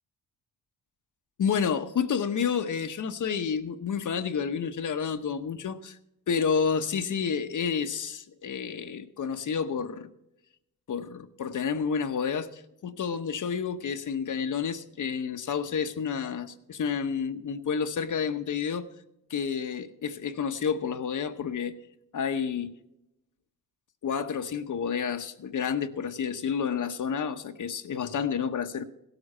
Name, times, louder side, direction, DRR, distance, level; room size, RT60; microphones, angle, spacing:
voice 1, 1.4-6.0 6.3-10.1 10.9-18.9 19.3-21.7 22.1-22.7 24.0-28.8, left 6 dB, 50° left, 7 dB, 1.0 m, -30 dB
17.0 x 8.1 x 5.5 m, 0.84 s
cardioid pair, 85°, 38 cm